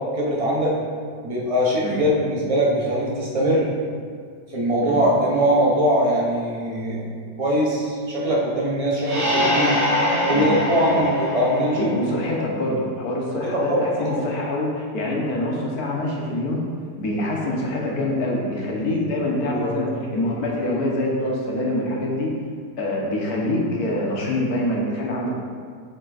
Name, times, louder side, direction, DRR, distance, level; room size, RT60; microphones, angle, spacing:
voice 1, 0.1-0.7 1.2-3.7 4.5-7.0 7.4-9.8 10.3-11.9 13.5-13.8 14.1-14.2 18.9-19.0 19.4-19.9, equal, 25° right, -4 dB, 0.8 m, -21 dB
sound 1, 9.0-12.6, equal, 50° right, 1.5 m, -24 dB
voice 2, 11.8-16.6 17.0-22.3 22.8-25.3, left 1 dB, 65° left, -2 dB, 1.4 m, -25 dB
6.6 x 3.6 x 4.0 m, 2.1 s
omnidirectional pair, 1.8 m